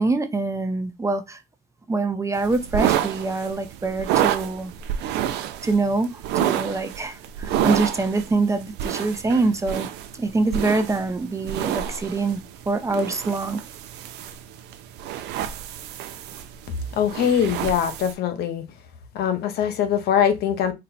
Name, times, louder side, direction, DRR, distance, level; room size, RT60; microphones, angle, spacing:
voice 1, 0.0-1.4 1.9-4.7 5.6-9.9 10.2-12.4 12.7-13.6, right 3 dB, 15° right, 0.6 m, -24 dB
sound 1, 2.3-18.1, right 11 dB, 90° right, 0.5 m, -29 dB
voice 2, 17.0-18.6 19.1-20.7, left 8 dB, 70° left, 0.8 m, -22 dB
4.3 x 2.1 x 4.0 m
cardioid pair, 110°, 17 cm